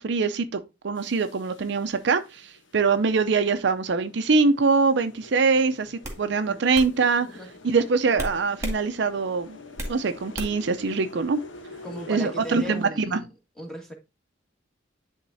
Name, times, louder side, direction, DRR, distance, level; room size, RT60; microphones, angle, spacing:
voice 1, 0.0-7.3 7.6-9.6 9.9-11.4 12.1-13.2, right 4 dB, 65° right, 0.6 m, -23 dB
sound 1, 1.0-12.9, left 2 dB, 85° left, 1.1 m, -47 dB
sound 2, 5.2-5.5 6.0-6.2 6.7-6.9 8.2-8.8 9.2-10.0 10.3-10.7, right 1 dB, 15° right, 2.0 m, -33 dB
voice 2, 7.3-7.8 11.8-13.3 13.5-13.9, right 1 dB, 5° left, 1.6 m, -37 dB
10.5 x 3.6 x 2.7 m
head